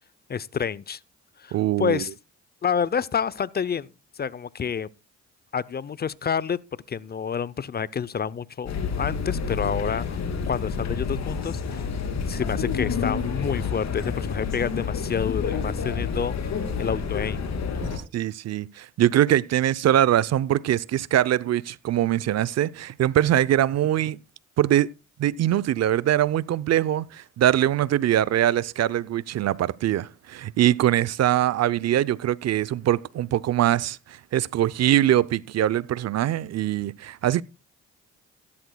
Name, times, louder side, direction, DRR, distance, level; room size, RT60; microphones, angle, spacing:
voice 1, 0.3-1.0 1.4-2.1 2.6-3.9 4.2-4.9 5.5-6.6 6.9-10.2 10.5-11.8 12.3-16.5 16.8-17.5, left 7 dB, 35° left, 0.5 m, -28 dB
voice 2, 1.5-2.0 17.8-24.2 24.6-24.9 25.2-37.4, right 12 dB, 60° right, 0.6 m, -23 dB
sound 1, 8.7-18.0, left 5 dB, 60° left, 2.9 m, -29 dB
15.5 x 13.0 x 2.2 m
cardioid pair, 90°, 30 cm